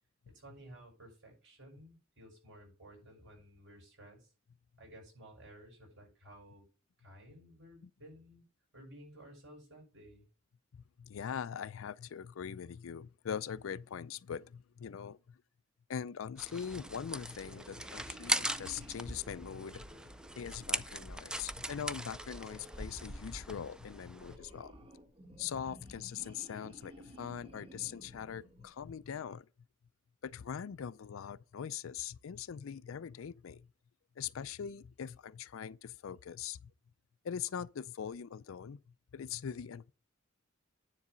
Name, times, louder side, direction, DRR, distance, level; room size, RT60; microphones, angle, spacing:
voice 1, 0.3-4.3 4.8-6.6 7.0-8.4 8.7-10.3, right 1 dB, 65° right, 5.6 m, -55 dB
voice 2, 10.7-15.4 15.9-19.9 20.4-24.8 25.4-29.5 30.2-33.7 34.2-36.7 37.2-39.9, left 8 dB, 85° left, 0.4 m, -42 dB
sound 1, 16.4-24.4, right 1 dB, 5° right, 0.4 m, -40 dB
sound 2, 16.6-29.1, equal, 30° right, 1.3 m, -55 dB
9.8 x 4.0 x 6.2 m
head